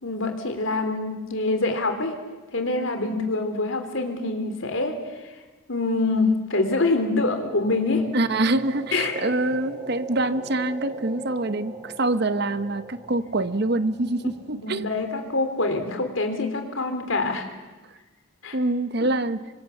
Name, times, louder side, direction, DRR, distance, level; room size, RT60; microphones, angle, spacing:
voice 1, 0.0-2.2 2.5-5.0 5.7-8.0 8.9-9.1 14.5-17.5 18.4-18.6, left 3 dB, 70° left, 6 dB, 3.4 m, -25 dB
sound 1, 7.0-15.1, right 3 dB, 20° right, 3.0 m, -40 dB
voice 2, 8.1-14.9 18.5-19.4, right 2 dB, 50° right, 13 dB, 0.9 m, -25 dB
26.0 x 25.0 x 7.2 m, 1.2 s
head